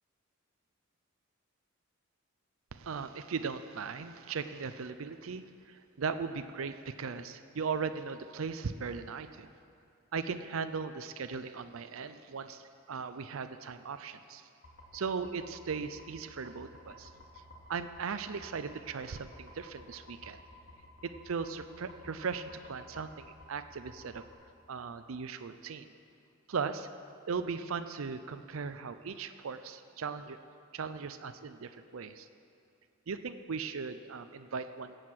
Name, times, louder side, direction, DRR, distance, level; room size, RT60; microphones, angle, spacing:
voice 1, 2.7-9.5 10.1-14.5 14.9-17.1 17.7-20.4 21.0-24.2 24.7-25.9 26.5-26.9 27.3-30.4 30.7-32.3 33.1-35.0, right 5 dB, 80° right, 10 dB, 0.5 m, -38 dB
sound 1, 14.6-24.3, left 1 dB, 55° left, 2.5 m, -54 dB
17.0 x 6.5 x 7.7 m, 2.6 s
head